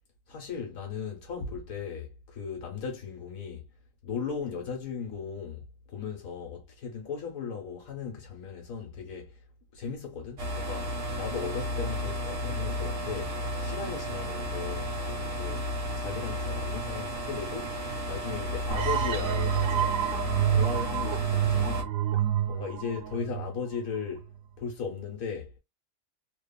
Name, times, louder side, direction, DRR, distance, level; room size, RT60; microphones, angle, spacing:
voice 1, 0.3-3.7 4.0-9.4 9.7-15.6 16.0-17.8 18.1-20.0 20.5-21.9 22.5-24.3 24.6-25.6, left 6 dB, 85° left, 1.2 m, -37 dB
sound 1, 10.4-21.8, equal, 50° right, 1.2 m, -33 dB
sound 2, 18.7-24.2, right 10 dB, 85° right, 1.0 m, -28 dB
2.9 x 2.3 x 2.2 m
omnidirectional pair, 1.4 m